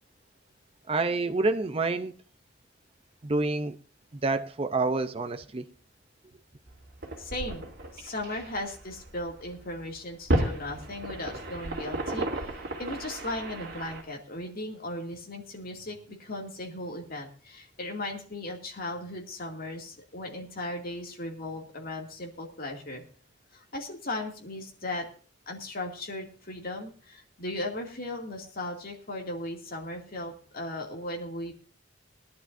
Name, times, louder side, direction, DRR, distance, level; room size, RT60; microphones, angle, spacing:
voice 1, 0.9-2.1 3.2-3.8 4.1-5.6, right 3 dB, 30° right, 0.6 m, -28 dB
sound 1, 6.7-14.0, right 1 dB, 55° right, 2.6 m, -34 dB
voice 2, 7.2-7.7 7.9-12.5 12.8-23.0 23.5-25.1 25.5-31.5, left 1 dB, 50° left, 2.4 m, -37 dB
20.0 x 11.0 x 2.6 m
head